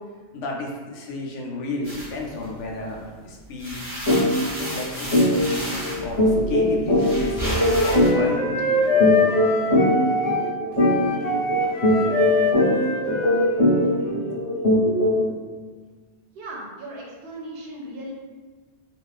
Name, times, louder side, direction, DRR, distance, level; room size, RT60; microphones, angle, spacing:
voice 1, 0.3-3.9 4.6-5.7 6.0-8.7, left 3 dB, 85° left, -1 dB, 0.9 m, -32 dB
sound 1, 1.8-3.0 3.4-8.1, right 1 dB, 30° right, 0.8 m, -32 dB
sound 2, 4.1-4.2 4.6-4.7 5.1-15.3, left 1 dB, 15° left, 0.8 m, -21 dB
Wind instrument woodwind instrument, 6.9-14.4, left 3 dB, 50° left, 0.4 m, -25 dB
voice 2, 16.3-18.1, right 1 dB, 65° right, -2 dB, 0.8 m, -37 dB
2.4 x 2.4 x 3.3 m, 1.4 s
omnidirectional pair, 1.2 m